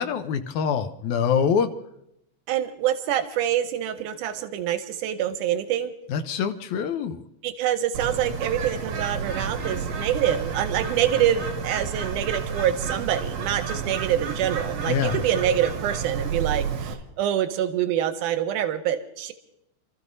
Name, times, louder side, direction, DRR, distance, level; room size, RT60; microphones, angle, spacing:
voice 1, 0.0-1.7 6.1-7.2 14.8-15.2, left 7 dB, 75° left, 8 dB, 2.1 m, -25 dB
voice 2, 2.5-5.9 7.4-19.3, right 10 dB, 85° right, 9 dB, 2.2 m, -26 dB
Bird, 7.9-16.9, right 6 dB, 70° right, 2.7 m, -31 dB
29.5 x 13.5 x 2.7 m, 0.80 s
omnidirectional pair, 3.6 m